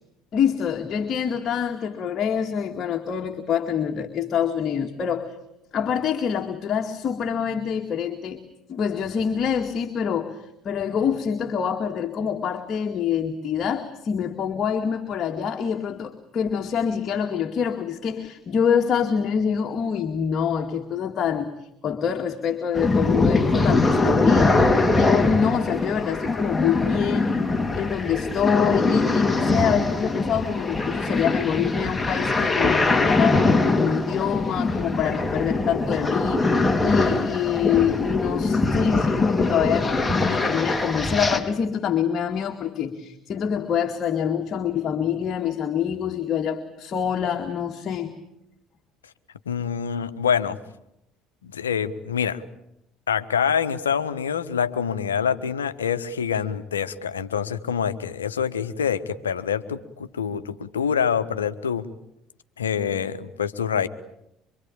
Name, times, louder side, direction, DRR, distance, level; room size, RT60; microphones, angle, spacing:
voice 1, 0.3-5.4 5.7-8.4 8.7-21.5 21.8-24.6 24.9-27.4 27.7-48.1, left 7 dB, 45° left, 3 dB, 2.2 m, -25 dB
sound 1, 22.7-41.4, left 3 dB, 10° left, 4.2 m, -22 dB
voice 2, 49.4-50.6 51.4-52.4 53.1-61.8 62.6-63.9, left 7 dB, 85° left, 11 dB, 1.3 m, -26 dB
26.0 x 25.0 x 8.8 m, 0.80 s
hypercardioid pair, 60°, 0 cm